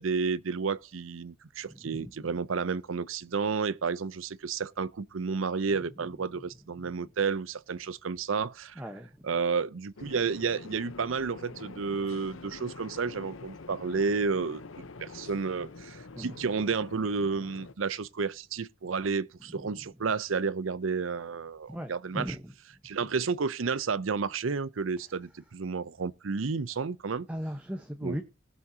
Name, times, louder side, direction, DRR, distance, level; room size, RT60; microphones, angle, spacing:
voice 1, 0.0-8.8 9.2-14.6 15.0-22.3 22.8-27.3 28.0-28.2, right 5 dB, 90° right, 0.6 m, -31 dB
voice 2, 1.7-2.3 8.8-9.3 16.1-16.4 19.5-19.8 21.7-22.5 27.3-28.2, equal, 5° right, 1.1 m, -38 dB
sound 1, 10.0-17.7, left 3 dB, 85° left, 0.9 m, -46 dB
19.0 x 7.4 x 2.8 m
head